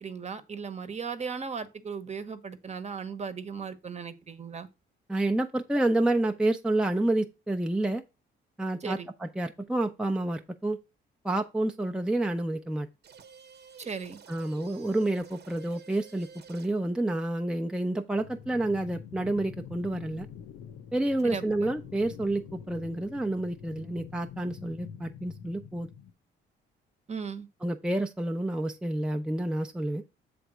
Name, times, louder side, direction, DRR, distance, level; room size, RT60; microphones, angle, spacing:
voice 1, 0.0-4.7 8.8-9.1 13.8-14.2 21.2-21.4 27.1-27.5, right 5 dB, 35° right, 1.1 m, -37 dB
voice 2, 5.1-8.0 8.6-10.8 11.2-12.9 14.3-20.3 20.9-25.9 27.6-30.0, right 1 dB, 5° right, 0.6 m, -29 dB
sound 1, 13.0-16.9, right 7 dB, 55° right, 1.0 m, -51 dB
sound 2, 18.1-26.1, left 8 dB, 90° left, 0.8 m, -46 dB
7.7 x 3.4 x 6.1 m
cardioid pair, 90°, 20 cm